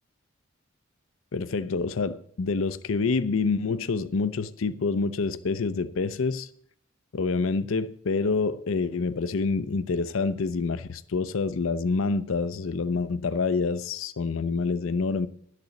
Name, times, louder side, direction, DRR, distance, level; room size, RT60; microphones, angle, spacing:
voice 1, 1.3-6.5 7.1-15.3, left 4 dB, 75° left, 0.5 m, -27 dB
11.5 x 6.7 x 6.9 m
head